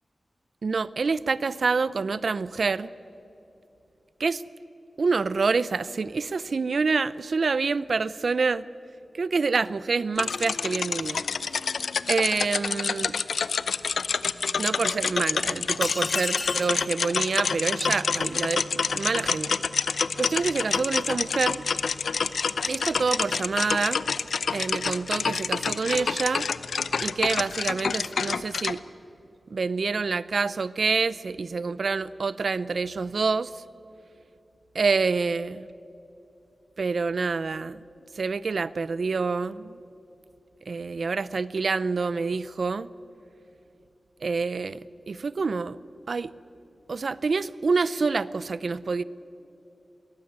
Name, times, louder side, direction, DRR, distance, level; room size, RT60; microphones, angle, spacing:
voice 1, 0.6-2.9 4.2-4.4 5.0-8.7 9.1-11.2 12.1-13.2 14.6-19.6 20.2-21.6 22.6-24.0 24.5-26.4 27.0-28.8 29.5-33.6 34.7-35.7 36.8-37.8 38.2-39.8 40.7-42.9 44.2-44.8 45.1-45.8 46.1-46.3 46.9-49.0, right 4 dB, 65° right, 18 dB, 0.6 m, -27 dB
sound 1, 10.2-28.8, left 5 dB, 90° left, 0.6 m, -28 dB
sound 2, 15.8-16.8, left 2 dB, 35° left, 1.3 m, -33 dB
22.0 x 19.0 x 8.7 m, 2.9 s
wide cardioid pair, 115°, 0 cm